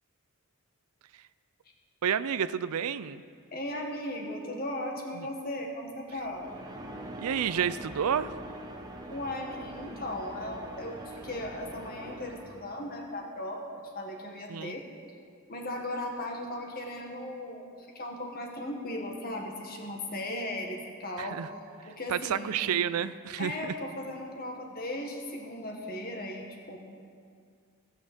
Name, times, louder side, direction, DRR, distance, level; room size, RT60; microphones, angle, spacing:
voice 1, 2.0-3.2 5.2-5.3 7.2-8.3 14.5-14.8 21.2-21.5 22.1-23.7, right 8 dB, 80° right, 15 dB, 0.4 m, -30 dB
voice 2, 3.5-6.5 9.1-14.9 15.5-21.4 21.9-22.6 23.4-26.8, left 1 dB, 40° left, 2 dB, 1.6 m, -37 dB
sound 1, 6.1-13.0, right 1 dB, 20° right, 1.0 m, -44 dB
16.5 x 6.5 x 7.9 m, 2.2 s
head